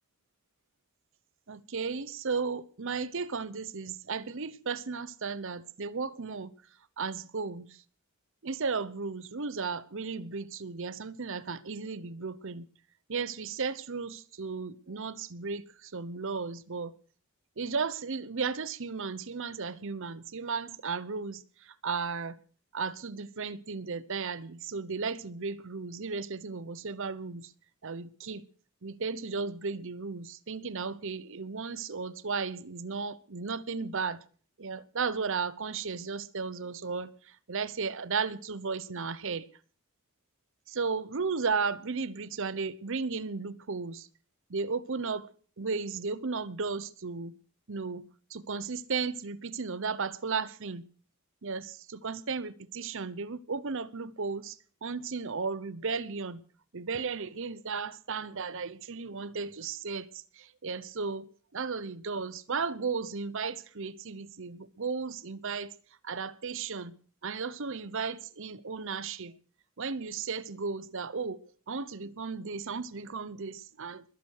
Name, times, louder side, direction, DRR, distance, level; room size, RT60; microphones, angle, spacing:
voice 1, 1.5-6.5 7.0-7.8 8.4-12.7 13.1-16.9 17.6-22.4 22.7-27.5 27.8-28.5 28.8-34.2 34.6-39.5 40.7-44.1 44.5-45.3 45.6-47.3 47.7-48.0 48.3-50.8 51.4-56.4 56.7-61.3 61.5-65.7 66.0-66.9 67.2-69.3 69.8-71.4 71.7-74.0, right 5 dB, 60° right, 0.8 m, -35 dB
21.0 x 8.5 x 6.5 m
head